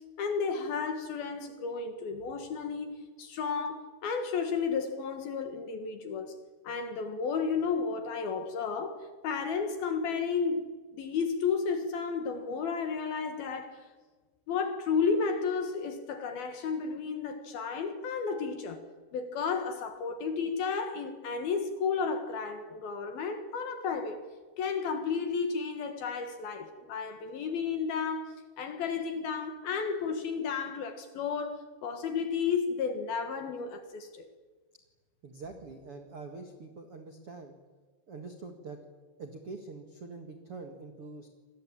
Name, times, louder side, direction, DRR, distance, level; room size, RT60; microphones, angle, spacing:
voice 1, 0.2-6.4 6.6-10.7 10.9-13.9 14.5-18.8 19.1-24.2 24.6-34.3, left 5 dB, 60° left, 2.9 m, -32 dB
voice 2, 35.2-37.5 38.1-38.8 39.2-41.3, right 3 dB, 55° right, 1.5 m, -44 dB
27.5 x 20.0 x 8.9 m
omnidirectional pair, 5.8 m